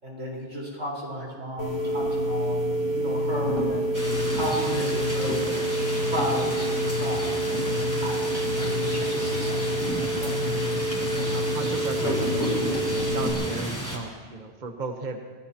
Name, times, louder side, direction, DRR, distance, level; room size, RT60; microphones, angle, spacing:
voice 1, 0.0-2.6 2.8-3.9 4.3-7.7 8.0-10.4, equal, 90° right, -3 dB, 5.1 m, -34 dB
sound 1, 1.6-13.3, right 1 dB, 80° left, 4.5 m, -27 dB
sound 2, 3.9-14.0, equal, 15° left, 3.7 m, -33 dB
voice 2, 10.9-15.2, right 3 dB, 40° right, 4 dB, 1.2 m, -36 dB
26.5 x 17.5 x 3.0 m, 1.5 s
omnidirectional pair, 1.2 m